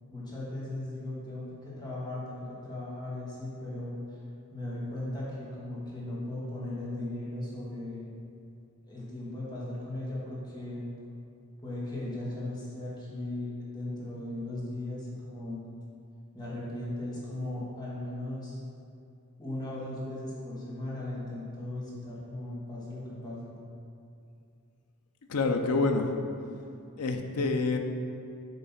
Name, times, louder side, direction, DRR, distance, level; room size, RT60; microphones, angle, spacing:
voice 1, 0.1-4.0 4.5-8.1 8.9-10.9 11.6-15.6 16.3-18.6 19.4-23.5, left 1 dB, 20° left, -7 dB, 1.6 m, -37 dB
voice 2, 25.3-26.1 27.0-27.8, left 3 dB, 85° left, 5 dB, 0.6 m, -27 dB
7.9 x 3.2 x 5.7 m, 2.5 s
head